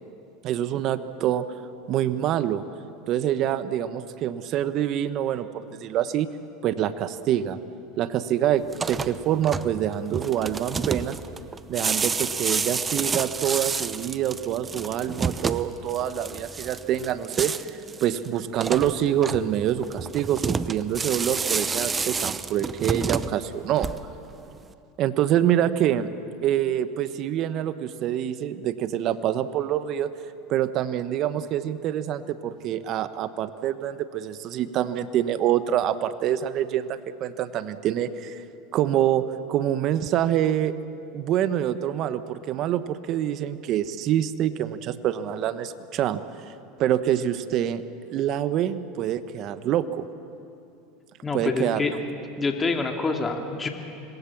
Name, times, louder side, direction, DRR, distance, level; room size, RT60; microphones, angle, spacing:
voice 1, 0.4-1.4 1.9-2.6 3.1-6.3 6.6-7.6 8.0-11.2 11.7-23.9 25.0-26.1 26.4-30.1 30.5-38.4 38.7-39.2 39.5-40.7 41.1-46.2 46.8-47.8 48.1-50.1 51.3-51.8, right 11 dB, 50° right, 12 dB, 1.2 m, -26 dB
sound 1, 8.6-24.3, right 5 dB, 20° right, 0.9 m, -30 dB
voice 2, 51.2-51.9 52.4-53.7, left 3 dB, 20° left, 3 dB, 2.6 m, -26 dB
26.5 x 21.5 x 7.3 m, 2.7 s
hypercardioid pair, 100°, 0 cm